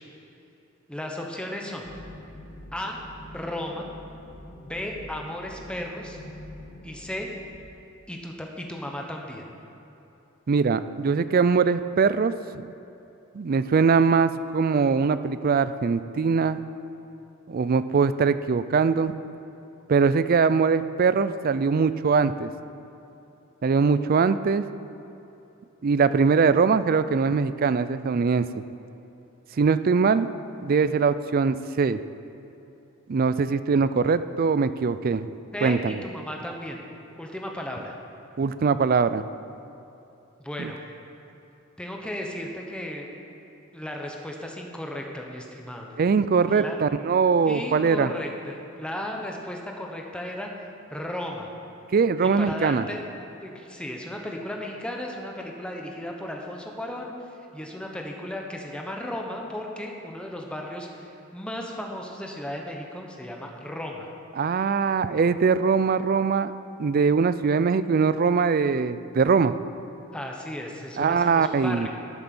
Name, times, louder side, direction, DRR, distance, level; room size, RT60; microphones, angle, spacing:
voice 1, 0.9-1.9 2.7-3.0 3.3-3.9 4.6-6.2 6.8-7.3 8.1-9.5 35.5-36.8 37.2-37.9 40.4-40.8 41.8-43.1 43.7-45.9 46.5-46.8 47.4-50.5 50.9-51.5 52.2-53.0 53.4-57.1 57.5-64.1 70.1-71.9, left 1 dB, 5° left, 0 dB, 1.1 m, -35 dB
sound 1, 1.8-7.5, left 1 dB, 45° left, 2.9 m, -45 dB
voice 2, 10.5-12.6 13.3-16.6 17.5-19.1 19.9-22.5 23.6-24.6 25.8-28.5 29.6-30.3 30.6-32.0 33.1-35.3 35.6-36.0 38.4-39.2 40.6-40.7 46.0-48.1 51.9-52.9 64.4-66.5 66.8-69.5 71.0-71.9, right 5 dB, 45° right, 13 dB, 0.4 m, -22 dB
11.5 x 8.7 x 6.2 m, 3.0 s
head